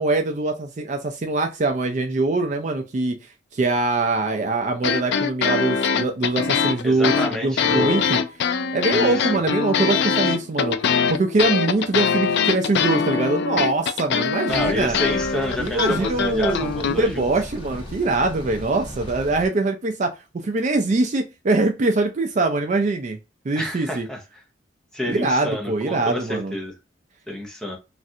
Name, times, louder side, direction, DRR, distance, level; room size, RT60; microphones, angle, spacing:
voice 1, 0.0-3.2 3.5-7.1 7.4-8.2 8.7-15.0 15.6-20.1 20.4-23.2 23.5-24.1 25.1-26.5, right 2 dB, 40° right, 0.4 m, -23 dB
sound 1, 4.8-16.9, left 6 dB, 60° left, 0.3 m, -22 dB
voice 2, 6.8-8.0 8.9-9.4 14.5-17.3 23.6-24.2 24.9-26.7 27.3-27.8, equal, 5° left, 0.7 m, -29 dB
sound 2, 14.5-19.5, equal, 25° left, 1.2 m, -36 dB
3.1 x 2.5 x 2.6 m
head